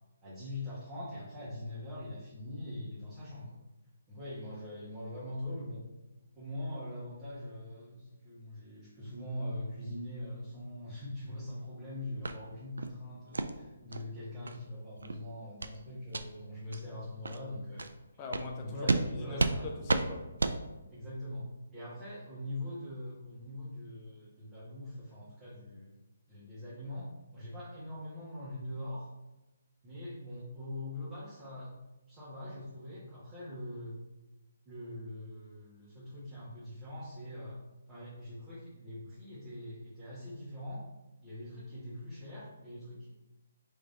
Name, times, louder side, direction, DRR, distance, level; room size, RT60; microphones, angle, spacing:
voice 1, 0.2-3.6 4.1-5.8 6.3-17.9 18.6-19.7 20.9-25.9 26.3-29.1 29.8-31.7 32.1-33.9 34.6-37.6 37.9-40.8 41.2-43.1, left 1 dB, 15° right, 1.6 m, -42 dB
sound 1, 12.2-12.4 12.8-12.9 13.3-13.5 13.9-14.0 14.4-14.6 15.0-15.1 15.6-15.8 16.1-16.2 16.7-16.8 17.2-17.4 17.8-17.9 18.3-18.5 18.9-19.0 19.4-19.6 19.9-20.0 20.4-20.6, right 3 dB, 80° right, 0.4 m, -30 dB
voice 2, 18.2-20.3, left 3 dB, 25° left, 0.7 m, -42 dB
3.8 x 3.3 x 4.2 m
figure-of-eight pair, 145°, 0 cm